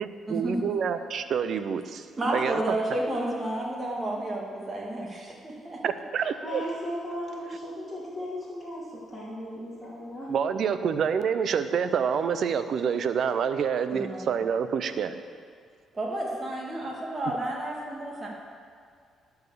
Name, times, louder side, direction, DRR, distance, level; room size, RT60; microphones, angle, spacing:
voice 1, 0.0-2.1 2.3-2.6 5.8-6.6 10.3-15.2, right 7 dB, 60° right, 11 dB, 0.5 m, -27 dB
voice 2, 2.2-5.8 13.9-14.4 15.9-18.3, right 1 dB, 30° right, -2 dB, 2.0 m, -31 dB
voice 3, 6.2-10.3, equal, 5° left, -9 dB, 2.7 m, -36 dB
11.5 x 4.7 x 6.6 m, 2.2 s
cardioid pair, 90°, 0 cm